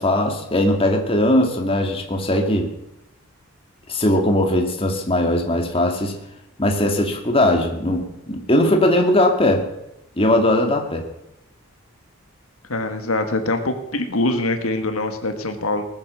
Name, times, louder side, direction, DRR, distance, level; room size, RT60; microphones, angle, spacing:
voice 1, 0.0-2.7 3.9-6.2 6.6-9.6 10.2-11.1, left 1 dB, 25° left, 3 dB, 2.0 m, -19 dB
voice 2, 12.7-15.8, left 2 dB, 75° left, 7 dB, 1.6 m, -23 dB
19.0 x 9.9 x 6.9 m, 0.87 s
head